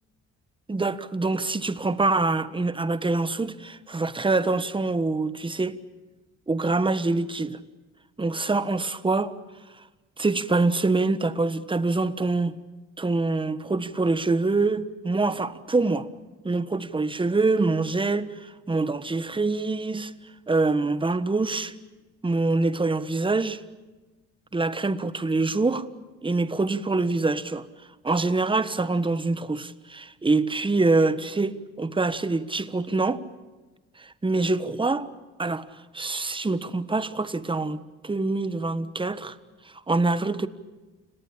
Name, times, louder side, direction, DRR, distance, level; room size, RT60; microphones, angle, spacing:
voice 1, 0.7-5.8 6.5-7.6 8.2-9.4 10.2-12.6 13.0-16.1 16.4-20.1 20.5-21.7 22.2-23.6 24.5-25.9 26.2-27.7 28.0-33.2 34.0-35.1 35.4-35.7 35.9-39.3 39.9-40.5, right 3 dB, 15° right, 1.4 m, -25 dB
30.0 x 19.0 x 8.8 m
cardioid pair, 90°, 30 cm